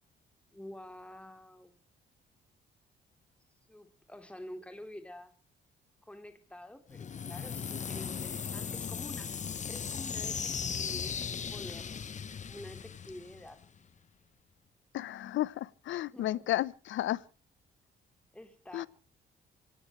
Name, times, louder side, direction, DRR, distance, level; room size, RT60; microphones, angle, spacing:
voice 1, 0.5-1.8 3.7-5.3 6.0-9.4 9.7-11.2 11.5-12.0 12.5-13.6 16.1-16.4 18.3-18.9, left 1 dB, 5° left, 3.3 m, -48 dB
sound 1, 6.9-13.8, left 6 dB, 35° left, 0.9 m, -37 dB
voice 2, 14.9-17.2 18.7-18.9, left 14 dB, 75° left, 0.8 m, -33 dB
26.0 x 17.0 x 3.2 m
cardioid pair, 90°, 20 cm